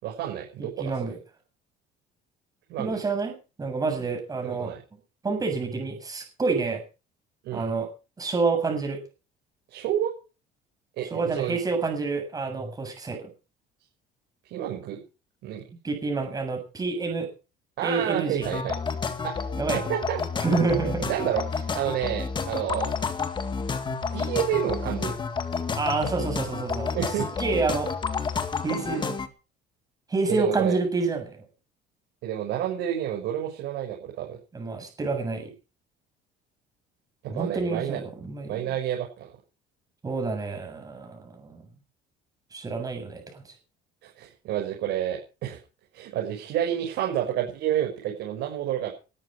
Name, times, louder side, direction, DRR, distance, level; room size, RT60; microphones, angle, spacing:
voice 1, 0.0-0.9 2.7-3.0 4.4-4.8 7.4-7.7 9.7-10.1 11.0-11.6 14.5-15.0 15.4-15.6 17.8-18.7 19.2-20.2 21.0-22.9 23.9-25.2 26.9-27.3 30.3-30.8 32.2-34.4 37.3-38.0 38.5-39.3 44.0-45.6 45.9-48.9, right 11 dB, 70° right, 0 dB, 6.4 m, -29 dB
voice 2, 0.6-1.2 2.8-4.8 5.2-6.8 7.5-7.9 8.2-9.0 11.1-13.3 15.8-17.3 17.8-18.5 19.6-19.9 20.4-21.0 25.8-26.9 27.2-27.9 28.6-29.2 30.1-31.5 34.5-35.5 37.3-38.7 40.0-41.6 42.5-43.4, right 4 dB, 20° right, 5 dB, 7.3 m, -28 dB
sound 1, 18.4-29.3, left 5 dB, 25° left, 2.0 m, -30 dB
20.0 x 13.5 x 5.0 m, 0.35 s
cardioid pair, 145°, 19 cm